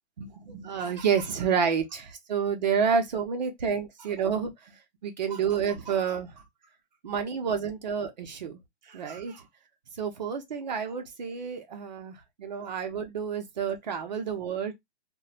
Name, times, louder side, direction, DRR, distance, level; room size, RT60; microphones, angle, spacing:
voice 1, 0.2-4.8 5.0-6.4 7.0-8.6 8.9-9.5 9.9-14.7, right 6 dB, 40° right, 0.6 m, -29 dB
3.0 x 2.1 x 2.4 m
hypercardioid pair, 165°, 33 cm